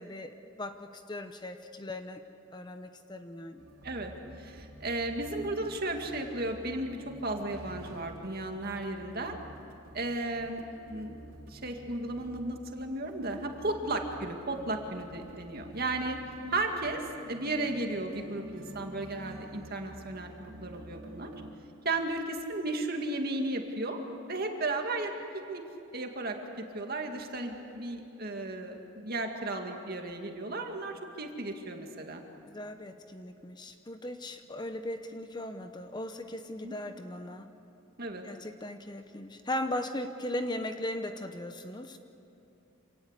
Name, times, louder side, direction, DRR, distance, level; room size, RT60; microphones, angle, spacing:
voice 1, 0.0-2.2 2.5-3.7 32.5-37.5 38.2-42.0, left 1 dB, 20° left, 8 dB, 0.8 m, -38 dB
sound 1, 3.6-21.5, right 1 dB, 80° right, 3.5 m, -50 dB
voice 2, 4.4-9.4 9.9-11.2 11.5-16.2 16.5-21.3 21.8-25.6 25.9-32.2 36.6-36.7 38.0-38.2, right 2 dB, 45° right, 3 dB, 2.2 m, -34 dB
27.0 x 18.0 x 8.2 m, 2.8 s
head